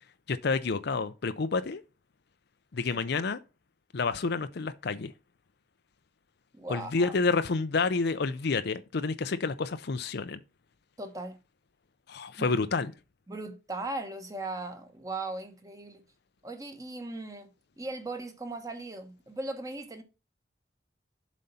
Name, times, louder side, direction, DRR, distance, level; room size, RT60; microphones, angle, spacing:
voice 1, 0.3-1.8 2.7-3.4 3.9-5.1 6.7-10.4 12.1-12.9, left 4 dB, 65° left, 0.6 m, -29 dB
voice 2, 6.5-7.2 11.0-11.4 12.4-12.5 13.3-16.0 16.4-17.5 17.8-20.0, right 2 dB, 20° right, 1.5 m, -38 dB
7.6 x 4.1 x 5.6 m
head